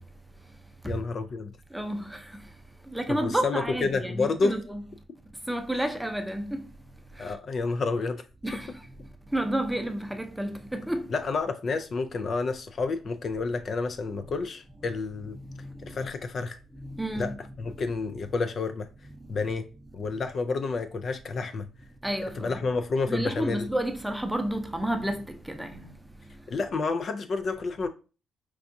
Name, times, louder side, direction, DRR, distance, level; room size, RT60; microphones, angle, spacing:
voice 1, 0.9-1.5 3.1-4.6 7.2-8.6 11.1-15.4 15.9-16.6 17.2-17.3 17.6-18.9 19.3-19.7 19.9-21.7 22.4-23.7 26.5-27.9, left 4 dB, 50° left, 0.3 m, -29 dB
voice 2, 1.7-2.3 2.9-4.8 5.5-6.6 7.2-7.3 8.4-8.7 9.3-11.1 15.6-15.7 16.8-17.4 22.0-22.6 23.1-25.9, right 1 dB, 5° right, 0.6 m, -30 dB
4.6 x 2.3 x 2.6 m
cardioid pair, 90°, 0 cm